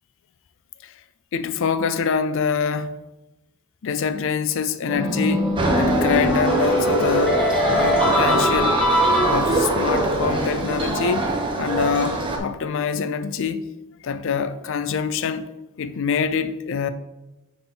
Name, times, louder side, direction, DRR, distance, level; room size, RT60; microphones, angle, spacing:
voice 1, 1.3-3.0 3.8-5.5 5.8-7.4 7.7-8.8 9.3-11.3 11.6-13.7 14.0-15.5 15.8-16.9, left 6 dB, 65° left, 0.4 m, -25 dB
sound 1, 4.9-9.8, equal, 5° left, 1.7 m, -22 dB
sound 2, 5.6-12.4, right 2 dB, 25° right, 1.0 m, -23 dB
9.6 x 4.0 x 3.8 m
head